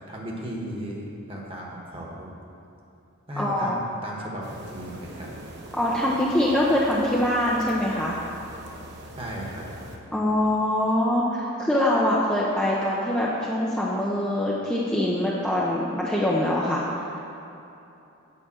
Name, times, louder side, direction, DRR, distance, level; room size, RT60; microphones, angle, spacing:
voice 1, 0.1-2.3 3.3-5.3 9.2-9.7, right 1 dB, 25° right, -2 dB, 1.3 m, -35 dB
voice 2, 3.4-3.8 5.8-8.2 10.1-17.1, left 1 dB, 5° left, -6 dB, 0.7 m, -24 dB
sound 1, 4.4-10.0, right 1 dB, 50° right, 1.0 m, -43 dB
8.7 x 5.2 x 7.6 m, 2.8 s
head